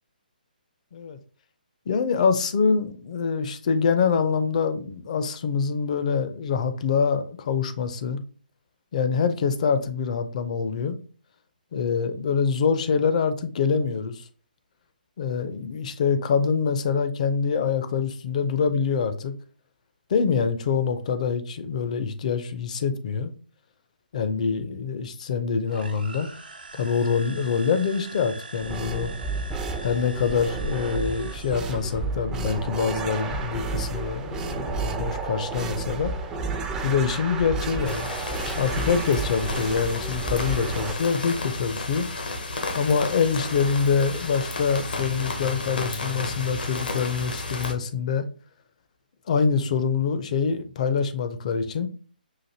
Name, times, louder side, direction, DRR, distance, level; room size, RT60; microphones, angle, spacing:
voice 1, 1.9-8.2 8.9-11.0 11.7-14.3 15.2-19.3 20.1-23.3 24.1-26.3 26.8-29.1 29.8-36.1 36.8-38.1 38.6-42.1 42.7-48.3 49.3-51.9, left 6 dB, 50° left, 0.5 m, -25 dB
sound 1, 25.7-32.0, right 3 dB, 75° right, 0.9 m, -42 dB
sound 2, 28.6-40.9, right 3 dB, 15° right, 0.4 m, -31 dB
sound 3, 37.8-47.7, left 3 dB, 75° left, 0.9 m, -32 dB
5.7 x 2.6 x 2.7 m
figure-of-eight pair, 140°, 5 cm